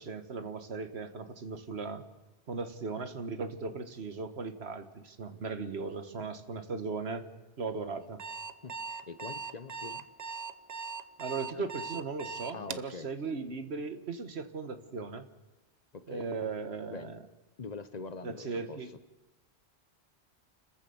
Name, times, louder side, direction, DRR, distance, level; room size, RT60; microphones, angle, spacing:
voice 1, 0.0-2.0 2.5-7.3 7.6-8.2 11.2-15.2 16.1-17.2 18.2-18.9, right 4 dB, 80° right, 9 dB, 1.6 m, -37 dB
Alarm, 8.0-12.9, right 5 dB, 45° right, 0.8 m, -39 dB
voice 2, 9.1-10.0 11.5-11.7 12.5-13.1 15.9-16.3 16.9-17.2 17.6-18.8, left 4 dB, 45° left, 13 dB, 0.9 m, -43 dB
29.5 x 14.5 x 7.0 m, 1.1 s
omnidirectional pair, 1.1 m